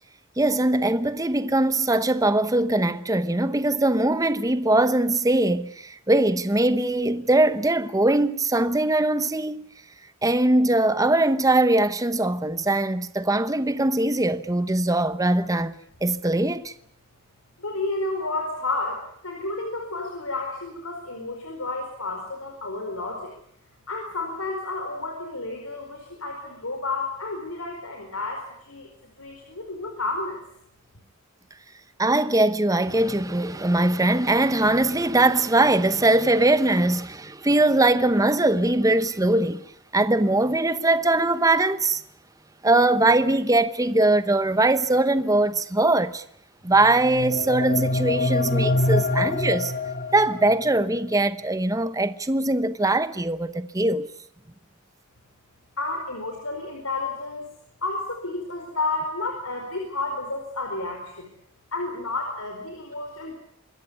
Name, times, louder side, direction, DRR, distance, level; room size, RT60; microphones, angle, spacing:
voice 1, 0.4-9.7 10.2-15.7 16.0-16.7 32.0-39.6 39.9-42.0 42.6-46.2 46.6-49.7 50.1-54.1, right 2 dB, 15° right, 0.9 m, -21 dB
voice 2, 17.6-23.3 23.9-28.9 29.2-30.4 55.8-57.5 57.8-61.3 61.7-63.3, left 2 dB, 80° left, 4.7 m, -31 dB
sound 1, 46.7-50.7, left 2 dB, 45° left, 2.0 m, -25 dB
25.5 x 14.0 x 9.6 m
head